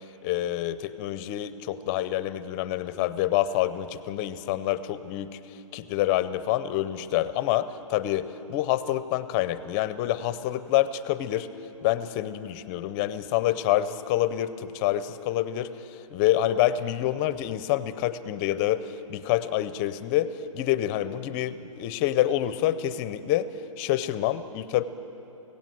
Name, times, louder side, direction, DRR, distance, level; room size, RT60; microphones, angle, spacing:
voice 1, 0.2-5.4 5.7-11.5 11.8-23.5 23.8-24.8, left 13 dB, 20° left, 14 dB, 0.5 m, -27 dB
25.0 x 17.0 x 7.7 m, 2.9 s
hypercardioid pair, 160°, 17 cm